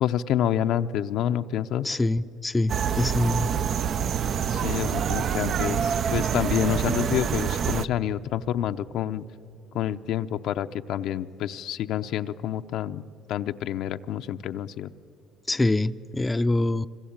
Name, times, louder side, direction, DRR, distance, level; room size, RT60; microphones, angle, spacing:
voice 1, 0.0-1.9 4.5-9.2 9.7-13.0 13.3-14.9, left 10 dB, 75° left, 9 dB, 0.6 m, -28 dB
voice 2, 1.8-3.6 15.5-16.9, left 2 dB, 15° left, 10 dB, 0.5 m, -25 dB
sound 1, 2.7-7.8, right 8 dB, 55° right, 0.5 m, -26 dB
25.5 x 25.0 x 8.8 m, 2.6 s
cardioid pair, 100°, 0 cm